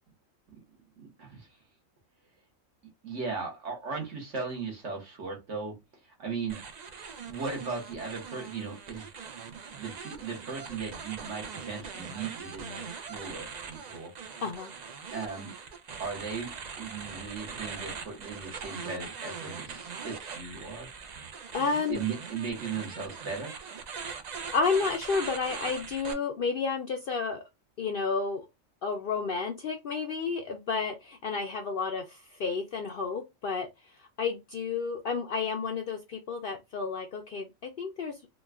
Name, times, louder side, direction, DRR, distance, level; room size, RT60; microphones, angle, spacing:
voice 1, 1.0-1.5 3.0-5.7 6.0-6.6 7.2-9.1 9.5-14.1 15.1-15.5 16.0-16.5 16.8-20.9 21.9-23.5, right 5 dB, 65° right, 1.5 m, -37 dB
sound 1, 6.5-26.1, right 6 dB, 80° right, 0.3 m, -41 dB
voice 2, 14.4-14.7 21.5-22.0 24.0-24.1 24.5-27.4 27.8-28.4 28.8-38.2, left 5 dB, 65° left, 0.5 m, -31 dB
3.8 x 2.3 x 2.3 m
omnidirectional pair, 1.4 m